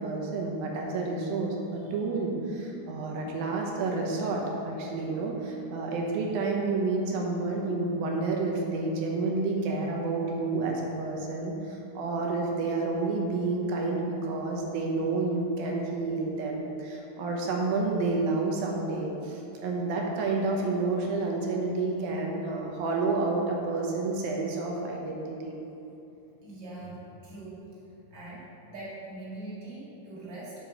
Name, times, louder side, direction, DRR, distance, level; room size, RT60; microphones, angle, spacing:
voice 1, 0.0-25.6, right 3 dB, 75° right, -1 dB, 2.5 m, -30 dB
voice 2, 26.4-27.6 28.1-30.5, right 2 dB, 35° right, -7 dB, 2.2 m, -42 dB
7.5 x 5.2 x 6.2 m, 2.9 s
omnidirectional pair, 4.6 m